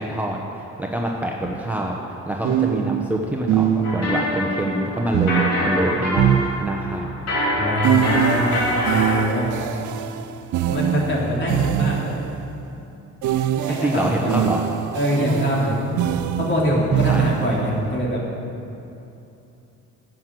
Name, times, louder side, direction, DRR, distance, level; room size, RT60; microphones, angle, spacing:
voice 1, 0.0-7.2 13.7-14.7 17.1-17.2, right 1 dB, 5° right, -1 dB, 1.0 m, -26 dB
sound 1, 1.4-1.6 2.4-4.3 5.1-7.1 7.8-12.4 13.2-17.7, right 10 dB, 75° right, 0.7 m, -24 dB
sound 2, 3.8-9.2, left 1 dB, 60° left, 3.4 m, -24 dB
voice 2, 7.6-9.6 10.6-12.2 13.6-14.4 14.9-15.8 16.3-18.2, equal, 40° left, -4 dB, 3.3 m, -23 dB
10.5 x 7.7 x 7.9 m, 2.8 s
cardioid pair, 90°, 30 cm